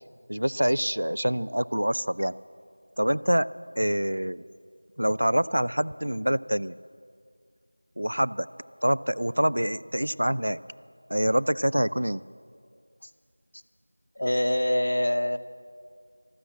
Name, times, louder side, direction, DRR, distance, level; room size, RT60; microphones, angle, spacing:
voice 1, 0.3-2.3 3.0-3.5 3.8-4.4 5.0-6.7 8.0-8.5 8.8-10.6 11.1-12.2, equal, 85° right, 15 dB, 0.4 m, -25 dB
voice 2, 14.2-15.4, left 1 dB, 45° left, 11 dB, 0.6 m, -24 dB
13.0 x 12.5 x 7.7 m, 2.2 s
figure-of-eight pair, 180°, 0 cm